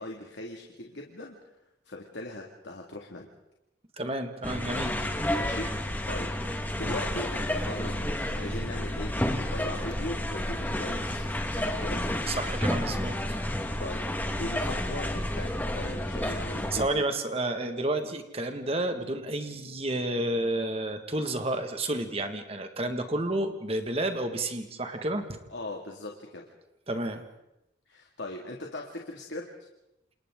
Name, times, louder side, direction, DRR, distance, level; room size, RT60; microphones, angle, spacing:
voice 1, 0.0-1.4 1.9-3.3 5.3-6.4 6.8-12.1 13.8-17.0 25.5-26.5 27.9-29.5, left 1 dB, 75° left, 0 dB, 2.2 m, -39 dB
voice 2, 4.0-5.1 12.3-13.4 16.2-16.3 16.7-25.4 26.9-27.2, right 1 dB, 30° right, 6 dB, 1.7 m, -31 dB
sound 1, 4.4-16.9, left 1 dB, 10° left, 1.6 m, -30 dB
28.5 x 28.5 x 3.8 m, 0.90 s
head